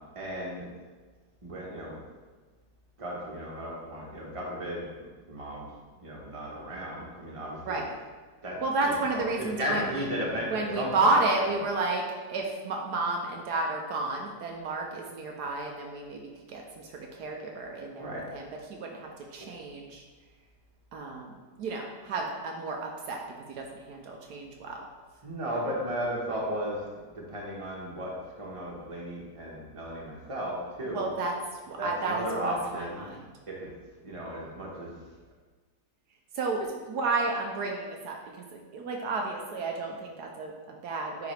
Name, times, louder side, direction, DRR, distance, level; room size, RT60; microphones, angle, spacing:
voice 1, 0.1-0.7 1.4-2.0 3.0-5.7 6.0-7.8 8.4-9.0 9.4-11.2 18.0-18.2 19.4-19.5 25.2-26.9 27.1-31.1 31.8-33.1 33.5-33.7 34.0-34.9, equal, 20° right, -4 dB, 1.2 m, -35 dB
voice 2, 8.6-10.1 10.5-20.0 20.9-23.2 23.5-24.9 30.9-33.3 36.3-41.3, right 3 dB, 75° right, 1 dB, 1.2 m, -32 dB
9.5 x 4.0 x 3.3 m, 1.4 s
omnidirectional pair, 1.8 m